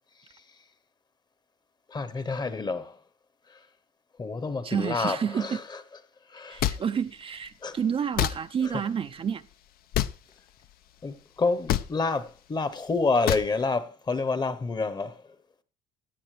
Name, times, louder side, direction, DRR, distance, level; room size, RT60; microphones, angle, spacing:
voice 1, 1.9-3.0 3.5-3.6 4.2-5.6 6.3-6.6 7.6-7.8 11.0-15.2, left 3 dB, 25° left, 0.9 m, -28 dB
voice 2, 4.6-5.6 6.5-9.5, right 7 dB, 35° right, 0.4 m, -29 dB
sound 1, 6.6-6.8 8.2-8.3 9.9-10.1 11.7-11.9 13.3-13.5, left 12 dB, 65° left, 0.6 m, -25 dB
16.5 x 9.8 x 3.3 m
cardioid pair, 110°, 17 cm